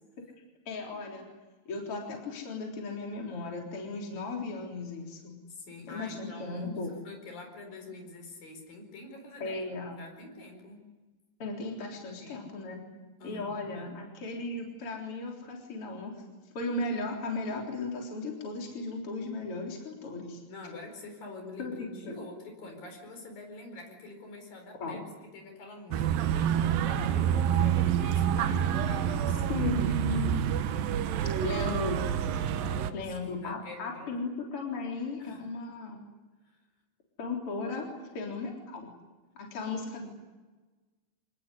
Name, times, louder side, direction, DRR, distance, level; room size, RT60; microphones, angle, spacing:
voice 1, 0.7-1.2 1.7-5.4 5.9-6.9 9.4-9.9 11.4-12.8 13.2-16.1 16.5-20.4 21.6-21.7 22.0-22.2 24.8-25.0 28.4-28.5 29.5-30.5 31.4-32.1 32.9-36.0 37.2-37.9 38.1-38.9 39.3-40.1, left 3 dB, 35° left, 0 dB, 4.4 m, -36 dB
voice 2, 5.5-9.6 10.0-10.8 12.2-14.0 20.5-25.1 25.3-30.3 32.5-33.1 33.4-34.2 35.2-35.5 36.4-36.6, left 2 dB, 65° left, 4 dB, 6.5 m, -46 dB
sound 1, 25.9-32.9, right 9 dB, 75° right, 2.7 m, -27 dB
26.0 x 20.0 x 9.9 m, 1.2 s
omnidirectional pair, 4.3 m